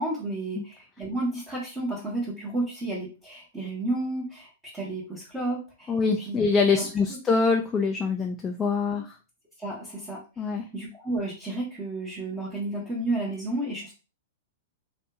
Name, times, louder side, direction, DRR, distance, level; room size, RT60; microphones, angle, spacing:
voice 1, 0.0-5.9 6.3-6.4 6.7-7.2 8.9-9.0 9.6-10.4 10.7-13.9, right 2 dB, 10° right, -6 dB, 0.8 m, -32 dB
voice 2, 5.9-9.2 10.4-10.6, left 4 dB, 15° left, 2 dB, 0.3 m, -24 dB
2.7 x 2.7 x 2.2 m, 0.32 s
hypercardioid pair, 145°, 0 cm